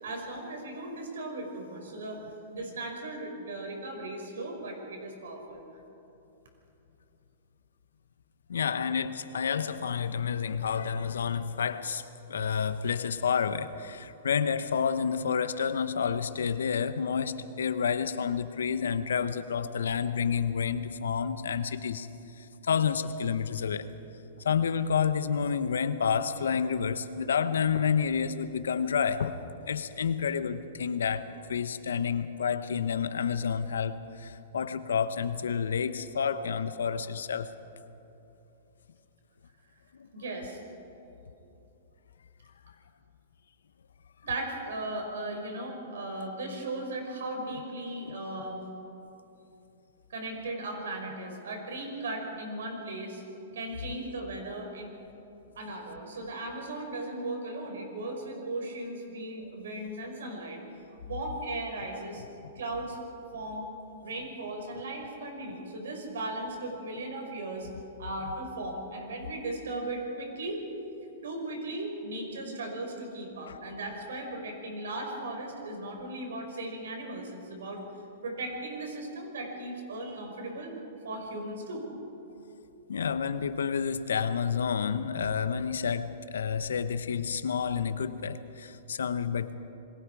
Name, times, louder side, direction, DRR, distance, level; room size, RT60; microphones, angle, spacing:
voice 1, 0.0-2.2 2.5-5.6 40.1-40.6 44.2-48.6 50.1-53.2 53.5-55.0 55.6-60.6 61.0-62.2 62.6-63.0 63.3-63.7 64.0-67.7 68.0-70.6 71.2-77.8 78.2-80.8 81.0-81.9, right 2 dB, 80° right, 2 dB, 5.6 m, -37 dB
voice 2, 8.5-22.1 22.4-23.9 24.4-29.4 29.7-37.5 48.1-48.2 73.5-73.6 82.9-89.6, left 7 dB, 85° left, 12 dB, 1.1 m, -29 dB
27.5 x 21.5 x 4.9 m, 2.9 s
hypercardioid pair, 130°, 0 cm